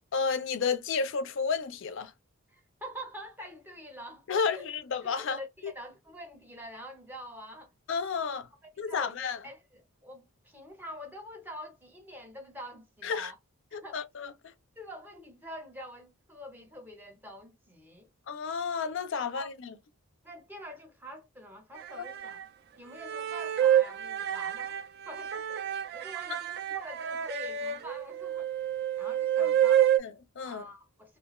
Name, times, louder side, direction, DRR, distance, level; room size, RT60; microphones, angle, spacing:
voice 1, 0.1-2.1 4.3-5.7 7.9-8.5 8.8-9.4 13.0-13.3 13.7-14.3 18.3-19.7 22.0-22.1 29.4-29.5 30.0-30.6, left 5 dB, 55° left, 0.4 m, -32 dB
voice 2, 2.5-4.6 5.0-7.7 8.6-13.4 13.8-14.0 14.8-18.1 19.2-19.5 20.2-22.4 22.8-28.5 29.0-29.9 30.4-31.2, equal, 10° right, 0.6 m, -46 dB
sound 1, 21.8-22.4 23.0-30.0, right 10 dB, 45° right, 0.3 m, -28 dB
2.4 x 2.2 x 2.9 m
head